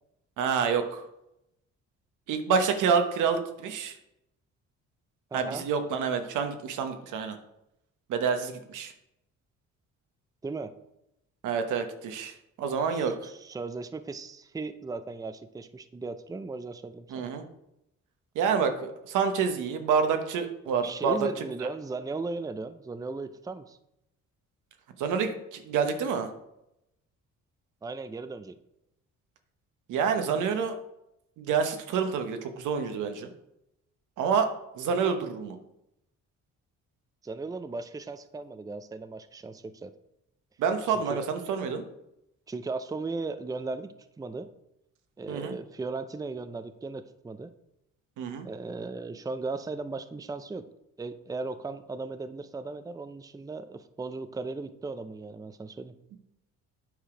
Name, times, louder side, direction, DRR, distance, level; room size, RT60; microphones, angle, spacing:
voice 1, 0.4-1.0 2.3-3.9 5.3-7.4 8.1-8.9 11.4-13.3 17.1-17.4 18.3-21.1 25.0-26.3 29.9-30.8 31.4-33.3 34.2-34.5 34.8-35.6 40.6-41.8 45.3-45.5 48.2-48.5, right 6 dB, 85° right, 6 dB, 1.1 m, -28 dB
voice 2, 5.3-5.6 10.4-10.7 12.9-17.3 20.8-23.8 27.8-28.6 37.2-39.9 41.1-41.2 42.5-44.5 45.2-47.5 48.4-50.7 51.0-56.0, right 3 dB, 10° right, 11 dB, 0.5 m, -37 dB
9.1 x 5.0 x 4.9 m, 0.84 s
cardioid pair, 90°, 30 cm